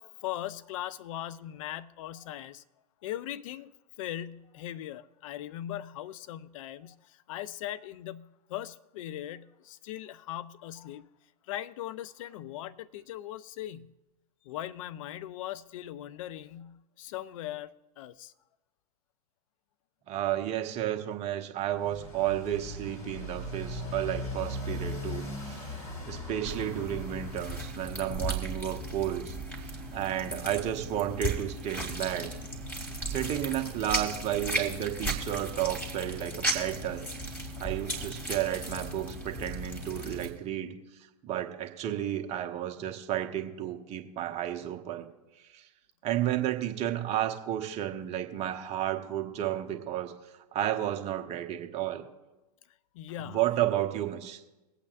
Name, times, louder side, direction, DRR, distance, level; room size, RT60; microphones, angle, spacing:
voice 1, 0.0-2.6 3.0-3.7 4.0-11.1 11.5-14.0 14.4-17.7 18.0-18.3 52.9-53.5, left 12 dB, 55° left, 0.5 m, -39 dB
voice 2, 20.1-25.7 26.1-29.4 29.6-32.3 33.1-37.1 37.6-40.8 41.2-45.1 45.5-45.6 46.0-50.1 50.5-52.1 53.3-54.4, right 12 dB, 30° right, 1.1 m, -32 dB
Motorcycle, 21.7-27.7, left 1 dB, 35° left, 4.0 m, -38 dB
sound 1, 26.4-40.3, right 1 dB, 10° left, 2.8 m, -36 dB
24.5 x 8.4 x 2.5 m
hypercardioid pair, 105°, 21 cm